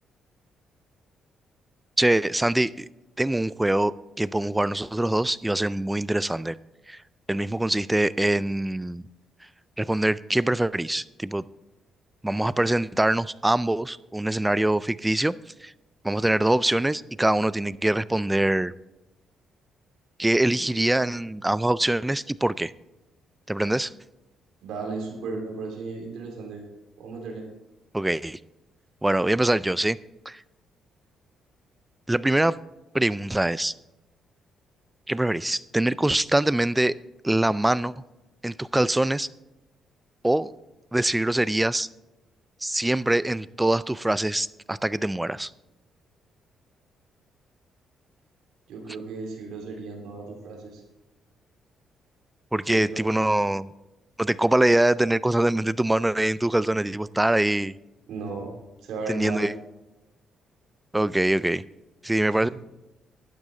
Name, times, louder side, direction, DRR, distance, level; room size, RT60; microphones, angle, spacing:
voice 1, 2.0-2.9 3.2-6.5 6.9-7.0 7.3-9.0 9.8-11.4 12.2-15.3 15.6-15.7 16.0-18.7 20.2-22.7 23.5-23.9 27.9-28.4 29.0-30.0 30.3-30.4 32.1-32.6 32.9-33.7 35.1-36.9 37.2-37.9 38.4-39.3 40.2-40.5 40.9-41.9 42.6-45.5 52.5-53.7 54.2-57.7 59.1-59.5 60.9-61.6 62.0-62.5, right 1 dB, 10° right, 18 dB, 0.3 m, -23 dB
voice 2, 24.6-26.6 27.0-27.5 48.7-50.8 52.7-53.3 58.1-58.5 58.8-59.5 62.2-62.5, right 4 dB, 85° right, 0 dB, 2.9 m, -35 dB
12.0 x 9.5 x 3.9 m, 0.97 s
cardioid pair, 90°, 0 cm